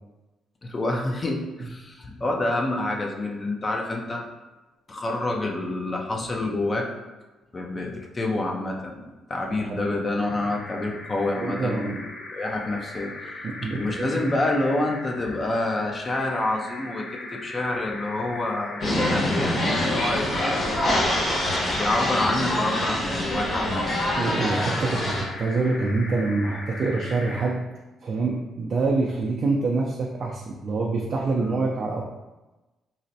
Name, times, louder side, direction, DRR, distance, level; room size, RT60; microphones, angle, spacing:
voice 1, 0.6-4.2 4.9-6.9 7.5-12.0 12.3-13.5 13.8-20.8 21.8-23.8 31.4-31.6, left 2 dB, 30° left, 1 dB, 0.5 m, -28 dB
sound 1, 10.2-27.6, left 2 dB, 75° left, 0.7 m, -39 dB
voice 2, 11.4-12.0 13.4-14.1 24.2-27.6 28.0-32.0, right 3 dB, 55° right, -2 dB, 0.4 m, -26 dB
sound 2, 18.8-25.2, left 1 dB, 50° left, 1.2 m, -25 dB
4.0 x 2.1 x 2.7 m, 1.1 s
cardioid pair, 90°, 0 cm